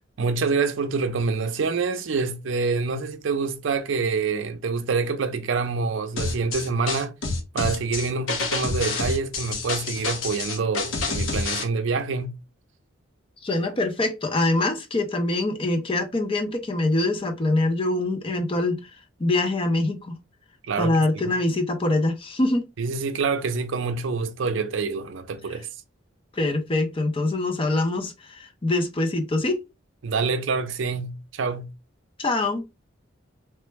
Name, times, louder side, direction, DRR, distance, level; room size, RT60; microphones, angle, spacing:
voice 1, 0.2-7.1 7.5-12.3 20.6-21.3 22.8-25.7 30.0-31.7, right 4 dB, 70° right, 0.5 m, -26 dB
sound 1, 6.2-11.6, left 3 dB, 75° left, 0.8 m, -28 dB
voice 2, 13.4-18.9 19.2-20.2 20.8-22.7 26.3-29.6 32.2-32.6, left 2 dB, 25° left, 0.5 m, -24 dB
3.2 x 2.0 x 3.2 m
head